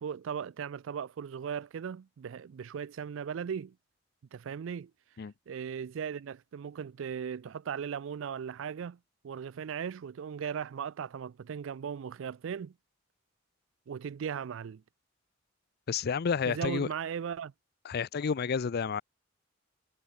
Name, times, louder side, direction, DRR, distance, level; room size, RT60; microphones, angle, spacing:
voice 1, 0.0-3.7 4.3-4.9 5.5-9.0 9.2-12.7 13.9-14.8 16.5-17.5, right 7 dB, 70° right, 0.4 m, -37 dB
voice 2, 15.9-16.9 17.8-19.0, left 6 dB, 55° left, 0.4 m, -30 dB
head